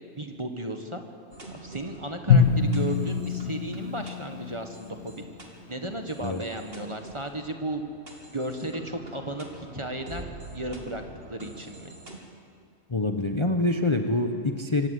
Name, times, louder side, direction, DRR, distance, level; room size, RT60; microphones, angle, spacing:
voice 1, 0.1-1.0 1.6-5.1 5.7-7.8 8.3-11.0 11.3-11.9, right 1 dB, 25° right, 5 dB, 1.5 m, -34 dB
sound 1, 1.3-12.2, right 2 dB, 45° right, 3.0 m, -46 dB
Drum, 2.3-5.2, left 6 dB, 80° left, 1.9 m, -24 dB
voice 2, 12.9-14.9, left 2 dB, 25° left, 5 dB, 1.0 m, -25 dB
25.5 x 17.0 x 8.3 m, 2.3 s
omnidirectional pair, 1.4 m